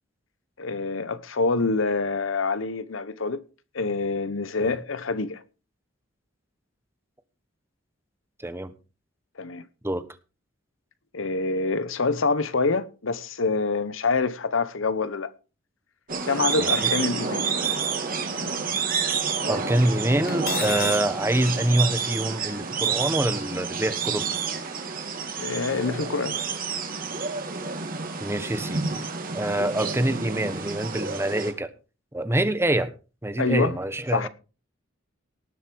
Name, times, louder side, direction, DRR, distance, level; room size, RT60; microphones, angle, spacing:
voice 1, 0.6-3.4 3.7-5.4 9.4-9.6 11.1-15.3 16.3-17.5 20.8-20.9 25.4-26.4 33.4-33.8 34.1-34.3, left 4 dB, 70° left, 0.9 m, -26 dB
sound 1, 16.1-31.5, right 5 dB, 45° right, 2.5 m, -29 dB
voice 2, 16.6-16.9 19.5-24.3 28.2-28.9 29.3-31.7 32.1-32.9 33.2-34.3, right 1 dB, 15° right, 1.2 m, -25 dB
Cutlery silverware, 20.3-21.1, left 11 dB, 50° left, 0.8 m, -32 dB
18.5 x 7.0 x 4.6 m
head